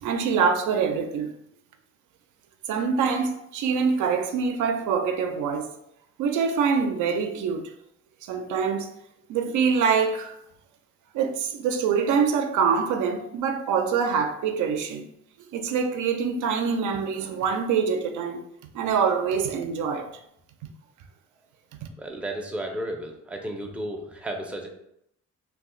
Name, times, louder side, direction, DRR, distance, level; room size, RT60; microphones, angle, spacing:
voice 1, 0.0-1.3 2.7-5.7 6.2-7.7 8.2-8.9 9.3-10.4 11.1-15.1 15.5-18.4 18.7-20.1, right 6 dB, 80° right, 0.5 m, -25 dB
voice 2, 22.0-24.7, right 1 dB, 5° right, 0.5 m, -33 dB
2.4 x 2.2 x 3.7 m
cardioid pair, 90°, 30 cm